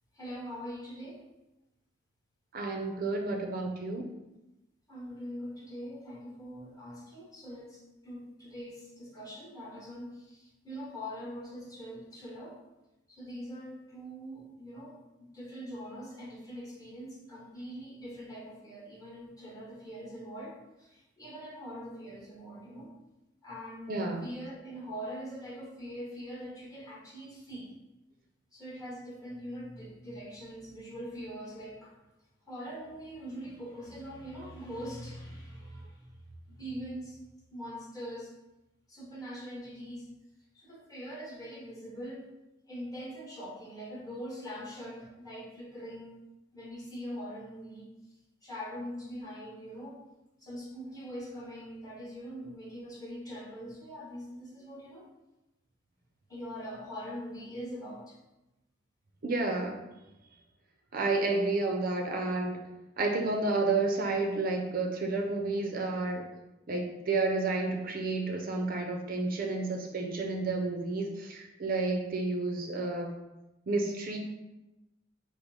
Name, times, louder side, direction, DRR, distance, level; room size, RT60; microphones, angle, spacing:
voice 1, 0.1-1.2 4.9-12.6 13.1-22.9 23.4-27.7 28.5-31.9 32.5-36.1 36.5-37.2 37.5-38.3 38.9-40.1 40.5-42.3 42.7-46.2 46.5-47.9 48.4-50.0 50.4-55.1 56.3-58.2, equal, 20° left, -4 dB, 1.1 m, -43 dB
voice 2, 2.5-4.1 23.9-24.2 59.2-59.8 60.9-62.6 63.0-66.2 66.7-73.1 73.7-74.2, right 3 dB, 50° right, 2 dB, 0.5 m, -30 dB
5.1 x 2.0 x 4.7 m, 0.98 s
head